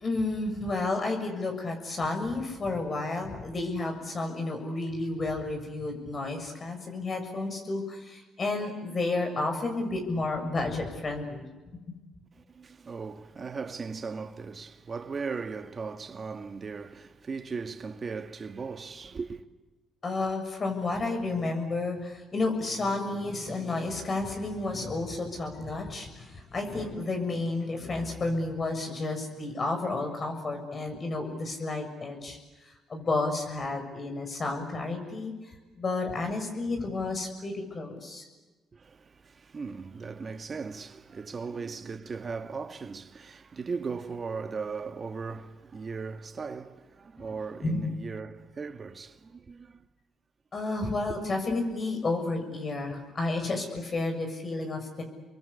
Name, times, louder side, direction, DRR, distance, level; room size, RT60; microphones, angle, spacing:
voice 1, 0.0-11.5 20.0-35.3 35.8-38.2 47.6-47.8 50.5-55.0, left 2 dB, 40° left, 6.8 m, -31 dB
voice 2, 12.3-19.4 38.7-49.8, right 5 dB, 40° right, 1.8 m, -38 dB
30.0 x 22.5 x 8.4 m
supercardioid pair, 70°, 0 cm